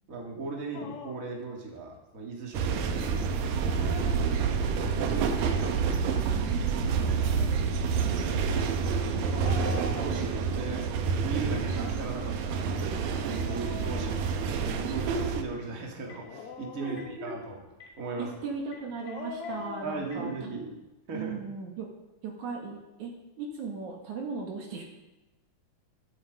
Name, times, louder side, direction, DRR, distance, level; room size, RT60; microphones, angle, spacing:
voice 1, 0.1-3.7 4.0-4.5 7.0-7.3 8.8-10.8 11.2-12.8 13.2-14.3 14.6-17.6 18.0-18.3 19.6-20.7 21.1-21.4, right 3 dB, 25° right, -1 dB, 2.5 m, -38 dB
Dog, 0.7-1.4 3.4-4.8 6.9-7.7 9.2-10.7 11.6-14.8 16.1-17.5 18.8-20.1, left 5 dB, 70° left, 1.4 m, -44 dB
sound 1, 2.5-15.4, right 6 dB, 90° right, 2.8 m, -28 dB
voice 2, 4.9-5.6 6.2-7.6 8.0-8.6 13.5-13.9 16.8-17.3 18.2-20.3 21.1-21.9 22.2-24.8, right 4 dB, 65° right, 0 dB, 3.1 m, -38 dB
Telephone, 16.1-16.3 16.9-17.1 17.7-17.9 18.6-19.5 20.0-20.2, left 6 dB, 10° left, 4.3 m, -50 dB
23.0 x 8.1 x 5.1 m, 1.1 s
omnidirectional pair, 3.9 m